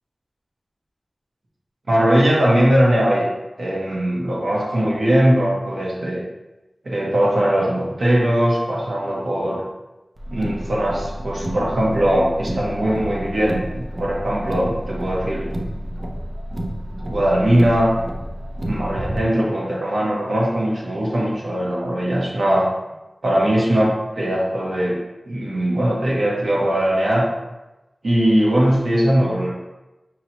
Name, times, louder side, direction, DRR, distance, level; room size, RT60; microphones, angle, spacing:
voice 1, 1.9-3.3 3.6-6.2 6.8-9.6 10.3-15.5 17.0-17.9 18.6-22.7 23.2-25.0 25.3-27.3 28.0-29.5, equal, 85° right, -5 dB, 1.1 m, -20 dB
Car, 10.2-19.2, equal, 45° right, 0.6 m, -30 dB
5.7 x 2.9 x 2.9 m, 1.0 s
wide cardioid pair, 65°, 0 cm